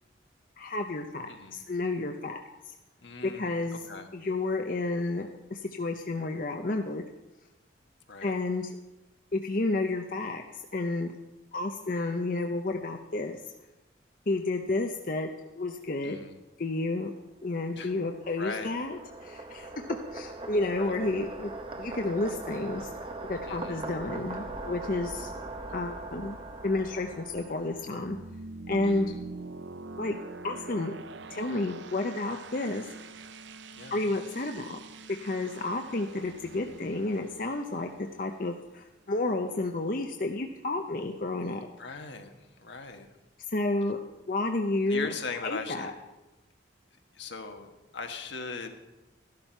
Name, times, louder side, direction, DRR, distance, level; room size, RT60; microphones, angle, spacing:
voice 1, 0.6-2.4 3.2-3.8 4.1-7.0 8.2-8.7 9.3-11.1 11.5-13.4 14.3-15.3 15.6-16.2 16.6-17.1 17.4-21.5 21.8-22.9 23.3-25.3 25.7-26.4 26.6-28.2 28.7-29.1 30.0-30.2 30.4-30.9 31.3-32.9 33.9-34.8 35.2-41.7 43.5-44.0 44.3-45.1 45.4-45.9, left 2 dB, 45° left, 3 dB, 0.7 m, -31 dB
voice 2, 1.3-1.6 3.0-4.1 8.1-8.3 16.0-16.4 17.7-17.9 18.4-18.7 20.8-21.0 23.4-23.8 28.8-29.2 33.8-34.0 41.8-43.1 44.9-45.9 47.1-48.7, left 4 dB, 70° left, 5 dB, 1.3 m, -39 dB
sound 1, 17.5-28.2, right 2 dB, 25° right, 0.8 m, -40 dB
sound 2, 27.6-39.3, right 3 dB, 75° right, 0.7 m, -45 dB
13.0 x 11.5 x 4.5 m, 1.1 s
head